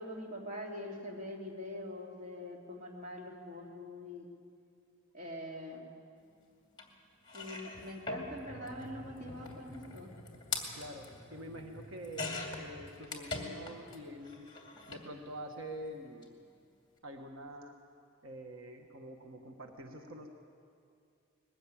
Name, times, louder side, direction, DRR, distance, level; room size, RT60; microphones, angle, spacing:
voice 1, 0.0-4.3 5.1-5.9 7.3-10.1, left 1 dB, 40° right, -1 dB, 2.8 m, -44 dB
sound 1, 6.8-6.9 7.2-14.0 14.2-15.1 16.1-16.2 16.5-16.6, left 3 dB, 25° left, 2.5 m, -43 dB
voice 2, 10.7-14.5 14.9-16.3 17.0-17.7 18.2-20.3, equal, 90° right, 4 dB, 1.4 m, -46 dB
20.5 x 15.0 x 8.6 m, 2.4 s
head